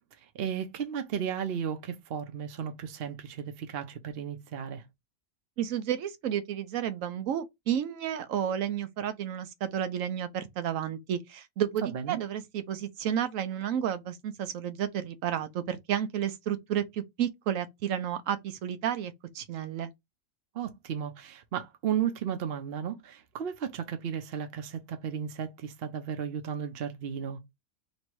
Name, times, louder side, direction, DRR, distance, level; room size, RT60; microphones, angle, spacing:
voice 1, 0.3-4.8 11.8-12.2 20.5-27.4, right 8 dB, 55° right, 0.8 m, -34 dB
voice 2, 5.6-19.9, right 9 dB, 80° right, 1.0 m, -31 dB
3.0 x 2.7 x 4.5 m
omnidirectional pair, 1.4 m